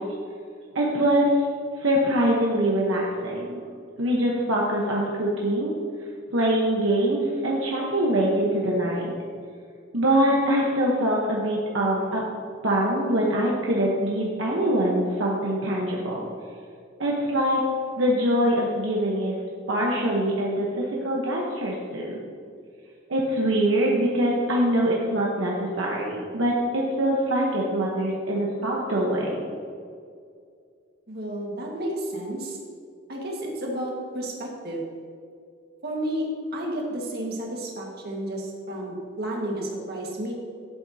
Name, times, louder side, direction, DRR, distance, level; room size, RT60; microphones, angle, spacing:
voice 1, 0.7-1.3 1.8-3.6 4.0-5.7 6.3-9.1 9.9-12.2 12.6-16.3 17.0-17.6 18.0-19.4 19.7-22.2 23.1-29.3, right 1 dB, 75° right, -3 dB, 1.1 m, -23 dB
voice 2, 31.1-32.6 33.1-34.9 35.8-36.3 36.5-40.3, right 1 dB, 55° right, -1 dB, 1.7 m, -31 dB
12.0 x 7.9 x 2.8 m, 2.3 s
head